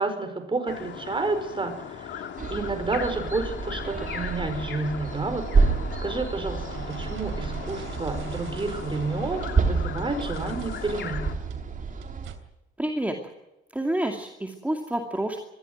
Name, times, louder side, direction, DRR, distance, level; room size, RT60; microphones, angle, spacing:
voice 1, 0.0-2.2 2.5-5.7 6.0-11.2, right 3 dB, 25° right, 7 dB, 5.0 m, -30 dB
sound 1, 0.7-11.3, left 8 dB, 65° left, 2.6 m, -38 dB
sound 2, 2.4-12.4, right 4 dB, 40° right, 2.6 m, -29 dB
sound 3, 6.7-12.3, right 8 dB, 85° right, 3.2 m, -41 dB
voice 2, 12.8-13.2 13.7-15.4, right 1 dB, 5° right, 3 dB, 2.4 m, -28 dB
21.5 x 14.5 x 9.4 m, 0.97 s
cardioid pair, 90°, 20 cm